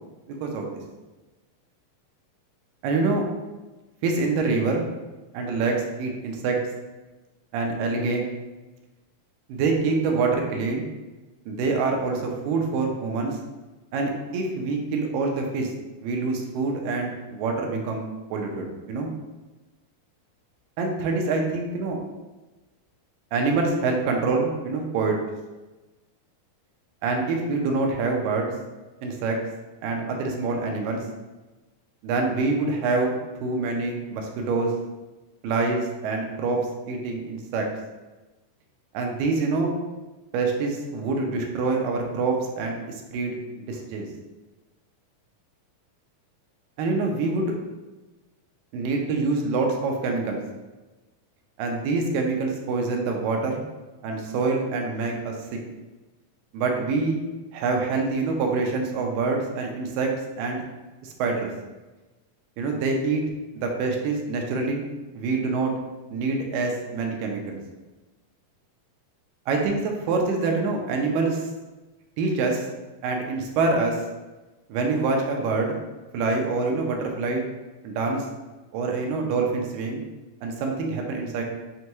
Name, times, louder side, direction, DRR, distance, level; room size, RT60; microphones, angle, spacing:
voice 1, 0.3-0.7 2.8-3.3 4.0-4.8 5.3-6.6 7.5-8.3 9.5-10.9 11.5-13.4 13.9-15.7 16.0-18.1 18.3-19.1 20.8-22.0 23.3-25.2 27.0-28.5 29.0-29.4 29.8-31.0 32.0-34.7 35.4-37.7 38.9-39.8 40.3-43.4 43.7-44.1 46.8-47.5 48.7-50.4 51.6-53.6 54.0-55.6 56.5-57.2 57.5-60.6 61.0-61.5 62.6-63.3 63.5-64.8 65.1-65.7 66.1-67.6 69.5-71.5 72.2-72.7 73.0-74.0 74.7-75.8 76.1-77.4 77.8-78.3 78.7-80.0 80.4-81.4, right 3 dB, 80° right, 1 dB, 2.2 m, -26 dB
6.3 x 2.2 x 2.9 m, 1.2 s
omnidirectional pair, 4.0 m